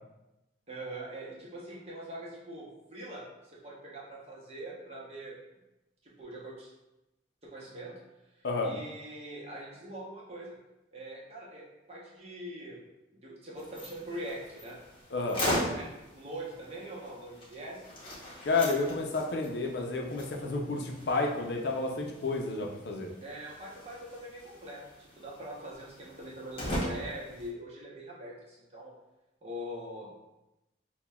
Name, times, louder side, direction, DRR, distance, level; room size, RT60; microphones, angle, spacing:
voice 1, 0.7-5.4 6.0-6.7 7.4-8.0 8.6-10.5 10.9-12.8 13.1-14.8 15.4-17.8 23.2-28.9 29.4-30.1, right 1 dB, 35° right, -5 dB, 0.8 m, -43 dB
sound 1, 13.6-27.5, left 1 dB, 30° left, 0.8 m, -40 dB
voice 2, 15.1-15.4 18.4-23.1, left 3 dB, 65° left, 1 dB, 0.5 m, -30 dB
5.8 x 2.2 x 2.3 m, 0.97 s
head